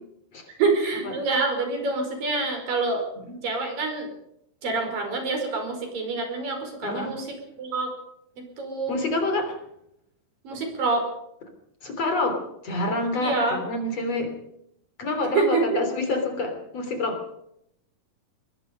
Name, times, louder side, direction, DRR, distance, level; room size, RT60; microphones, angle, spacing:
voice 1, 0.6-3.0 3.4-4.1 4.6-7.2 7.6-7.9 8.6-8.9 10.4-11.1 13.2-13.6 15.3-15.8, right 3 dB, 65° right, 4 dB, 6.8 m, -26 dB
voice 2, 6.8-7.1 8.9-9.6 11.8-14.3 15.0-17.2, left 2 dB, 45° left, 6 dB, 4.3 m, -27 dB
23.0 x 21.5 x 5.3 m, 0.77 s
omnidirectional pair, 4.2 m